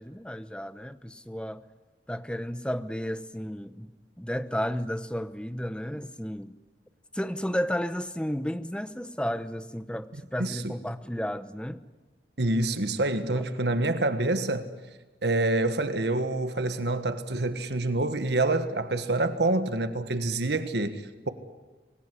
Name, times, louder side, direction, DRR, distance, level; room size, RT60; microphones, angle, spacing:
voice 1, 0.0-1.6 2.1-3.9 4.2-6.5 7.1-11.8 13.3-13.4, equal, 5° left, 0.9 m, -33 dB
voice 2, 10.4-10.7 12.4-14.7 15.2-21.3, right 2 dB, 75° right, 1.5 m, -27 dB
25.5 x 20.0 x 10.0 m
head